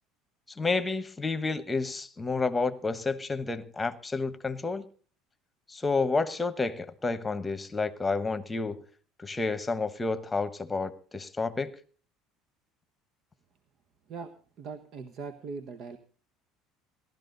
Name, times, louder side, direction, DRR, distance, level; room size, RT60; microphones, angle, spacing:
voice 1, 0.6-4.8 5.7-8.8 9.2-11.7, left 3 dB, 15° left, 1.2 m, -30 dB
voice 2, 14.1-16.0, right 4 dB, 50° right, 1.3 m, -41 dB
17.5 x 12.0 x 4.0 m
supercardioid pair, 110°, 0 cm